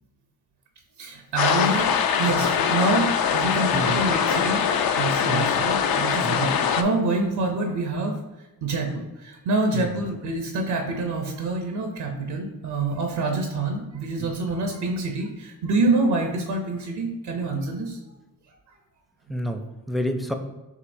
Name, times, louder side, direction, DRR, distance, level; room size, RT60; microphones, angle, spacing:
voice 1, 1.0-4.7 5.0-8.2 8.6-18.0, right 2 dB, 75° right, 3 dB, 0.7 m, -26 dB
sound 1, 1.4-6.8, left 7 dB, 60° left, 0.5 m, -22 dB
voice 2, 19.3-20.3, equal, ahead, 6 dB, 0.5 m, -28 dB
6.6 x 2.7 x 2.6 m, 1.0 s
cardioid pair, 55°, 40 cm